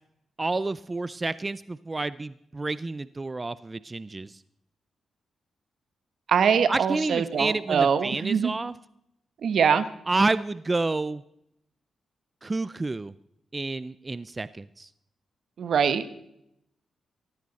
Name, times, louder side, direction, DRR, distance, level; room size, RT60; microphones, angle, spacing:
voice 1, 0.4-4.4 6.7-8.7 10.1-11.2 12.4-13.1 13.5-14.9, right 3 dB, 30° right, 17 dB, 0.5 m, -29 dB
voice 2, 6.3-8.5 9.4-9.9 15.6-16.0, right 7 dB, 70° right, 13 dB, 1.2 m, -23 dB
16.5 x 15.5 x 4.2 m, 0.78 s
cardioid pair, 60°, 0 cm